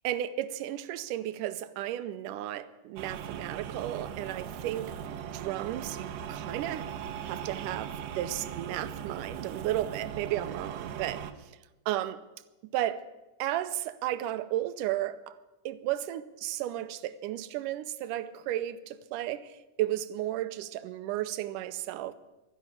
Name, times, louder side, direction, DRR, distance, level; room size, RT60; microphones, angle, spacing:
voice 1, 0.0-5.0 5.3-6.9 7.2-11.5 11.9-12.2 12.7-13.1 13.4-15.4 15.7-22.1, right 13 dB, 85° right, 2.2 m, -34 dB
sound 1, 3.0-11.3, right 8 dB, 70° right, 1.7 m, -39 dB
12.0 x 11.0 x 9.6 m
omnidirectional pair, 3.6 m